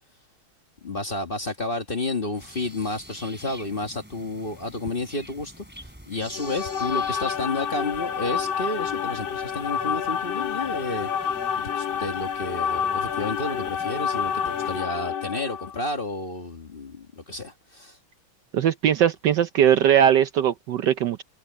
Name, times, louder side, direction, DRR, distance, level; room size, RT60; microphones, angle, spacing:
voice 1, 0.8-11.1 11.6-18.0, left 2 dB, 30° left, 1.4 m, -31 dB
sound 1, 2.4-14.8, equal, 5° right, 4.0 m, -47 dB
sound 2, 6.3-15.8, left 7 dB, 70° left, 2.4 m, -28 dB
voice 2, 18.5-21.2, right 9 dB, 65° right, 1.2 m, -20 dB
omnidirectional pair, 2.3 m